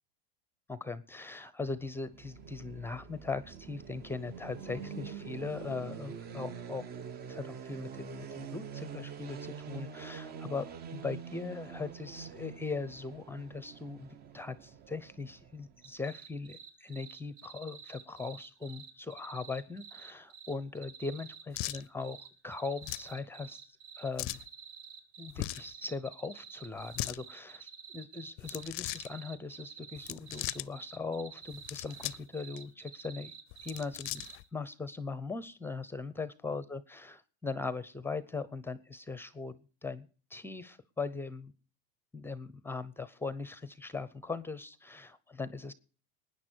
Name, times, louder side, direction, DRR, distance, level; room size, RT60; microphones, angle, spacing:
voice 1, 0.7-6.9 7.3-10.7 10.9-22.2 22.4-23.6 24.0-24.4 25.2-33.3 33.6-34.2 34.5-41.5 42.1-45.7, left 4 dB, 5° left, 16 dB, 0.7 m, -40 dB
sound 1, 2.0-15.9, right 7 dB, 30° right, 0.9 m, -45 dB
sound 2, 15.8-34.4, right 7 dB, 60° right, 6.3 m, -49 dB
sound 3, 21.5-21.8 22.8-23.1 24.2-24.5 25.3-25.7 26.8-27.2 28.4-29.1 30.0-30.7 31.5-32.3 32.6-32.7 33.5-34.4, left 21 dB, 45° left, 0.5 m, -38 dB
19.5 x 9.9 x 4.5 m, 0.39 s
supercardioid pair, 140°, 30 cm